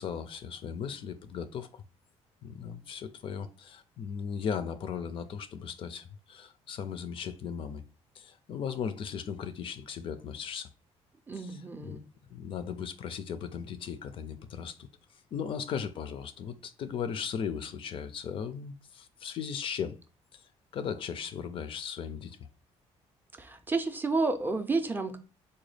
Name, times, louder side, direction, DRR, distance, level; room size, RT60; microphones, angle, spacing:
voice 1, 0.0-1.8 2.4-7.8 8.2-10.7 11.3-12.0 12.3-14.9 15.3-20.0 20.3-20.4 20.7-22.4, left 7 dB, 50° left, 0.4 m, -37 dB
voice 2, 11.3-12.0 23.4-25.2, right 3 dB, 15° right, 0.4 m, -30 dB
3.8 x 2.2 x 3.2 m
cardioid pair, 130°, 12 cm